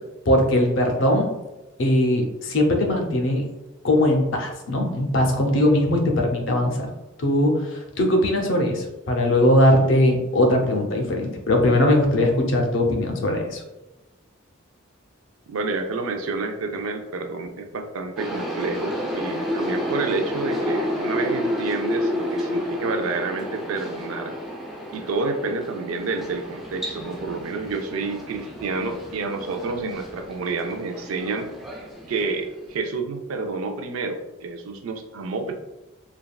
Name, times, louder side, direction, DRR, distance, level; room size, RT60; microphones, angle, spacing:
voice 1, 0.3-1.3 1.8-3.4 3.8-6.9 7.2-13.6, left 1 dB, 60° left, 3 dB, 0.5 m, -20 dB
voice 2, 15.5-24.3 24.9-31.5 32.1-35.5, right 3 dB, 85° right, 6 dB, 0.4 m, -29 dB
sound 1, 18.2-32.7, left 1 dB, ahead, 0.3 m, -30 dB
3.3 x 2.3 x 2.2 m, 1.0 s
head